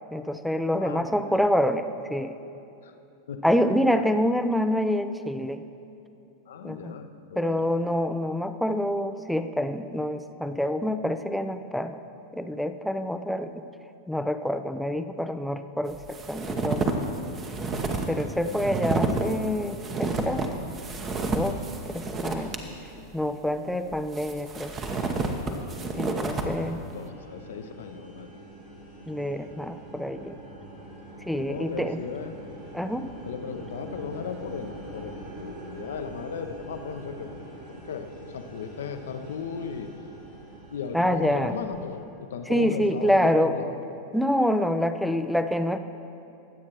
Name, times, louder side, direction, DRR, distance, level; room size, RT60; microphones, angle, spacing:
voice 1, 0.1-1.8 2.1-2.4 3.4-5.6 6.6-6.9 7.4-12.0 12.3-13.6 14.1-16.0 16.3-16.9 18.1-20.5 21.3-21.6 21.9-22.6 23.1-24.7 25.9-26.8 29.1-30.3 31.3-32.0 32.7-33.1 40.9-41.5 42.5-43.6 44.1-45.8, equal, ahead, 9 dB, 0.5 m, -26 dB
voice 2, 0.8-1.4 2.8-2.9 3.3-3.4 3.9-4.3 6.5-7.6 18.4-18.9 23.5-24.0 26.0-28.3 31.2-32.4 33.3-37.5 37.9-39.9 40.7-43.7, left 6 dB, 60° left, 6 dB, 0.7 m, -37 dB
sound 1, 15.9-22.6 23.0-23.1 23.9-26.5, right 3 dB, 25° right, 1.0 m, -30 dB
sound 2, 26.9-42.0, right 1 dB, 55° right, 2.6 m, -44 dB
23.0 x 8.4 x 3.0 m, 2.7 s
figure-of-eight pair, 90°, 0 cm